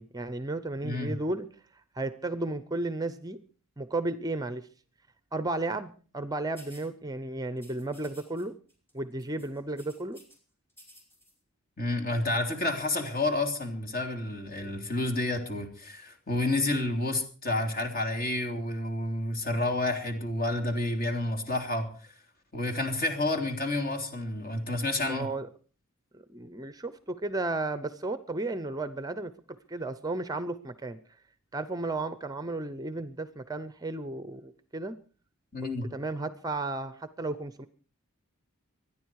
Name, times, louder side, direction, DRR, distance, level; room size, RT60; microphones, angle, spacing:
voice 1, 0.0-1.5 1.9-3.4 3.8-4.7 5.3-8.5 8.9-10.2 25.0-25.5 26.1-29.3 29.7-31.0 31.5-35.0 35.6-37.7, right 2 dB, 15° right, 12 dB, 0.7 m, -34 dB
voice 2, 0.8-1.1 11.8-21.9 22.5-25.3 35.5-35.9, left 2 dB, 40° left, 4 dB, 3.2 m, -30 dB
sound 1, 6.6-6.9 7.6-8.4 8.7-8.9 9.2-10.4 10.7-11.3, equal, 10° left, 5.6 m, -54 dB
25.0 x 10.0 x 4.7 m, 0.42 s
head